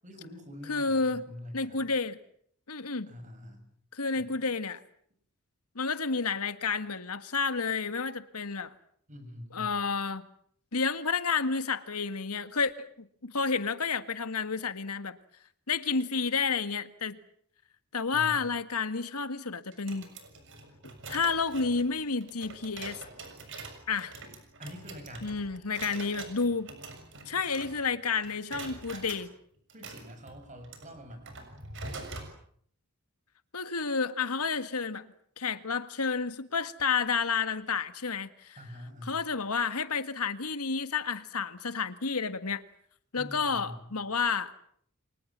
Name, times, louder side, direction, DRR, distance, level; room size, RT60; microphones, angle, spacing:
voice 1, 0.0-1.9 3.1-3.7 4.1-4.3 9.1-9.8 18.1-18.5 24.6-25.4 29.7-31.5 38.6-39.3 43.1-43.9, equal, 35° right, 7 dB, 7.3 m, -45 dB
voice 2, 0.7-1.2 1.5-2.2 2.7-3.1 3.9-4.8 5.7-8.7 9.5-10.2 10.7-15.2 15.7-17.2 17.9-20.1 21.1-23.0 23.9-24.1 25.2-26.7 27.3-29.3 33.5-35.1 35.4-38.6 39.0-42.6 43.1-44.5, left 5 dB, 85° left, 11 dB, 1.7 m, -30 dB
sound 1, 19.7-28.0 28.2-29.2 29.7-32.3, right 3 dB, 55° right, 6.7 m, -45 dB
29.5 x 24.0 x 7.5 m, 0.64 s
head